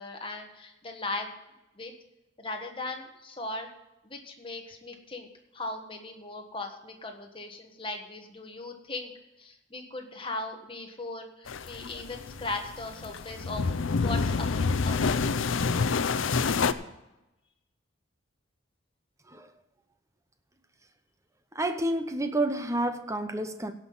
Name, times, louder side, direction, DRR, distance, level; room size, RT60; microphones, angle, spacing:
voice 1, 0.0-1.3 1.7-1.9 2.4-3.7 4.0-5.3 5.5-9.1 9.4-13.7 14.0-15.2, left 2 dB, 25° left, 3 dB, 1.5 m, -38 dB
sound 1, 11.5-16.7, left 4 dB, 70° left, 0.6 m, -28 dB
voice 2, 21.5-23.7, right 1 dB, 15° right, 9 dB, 0.8 m, -29 dB
17.0 x 5.9 x 5.5 m, 0.96 s
head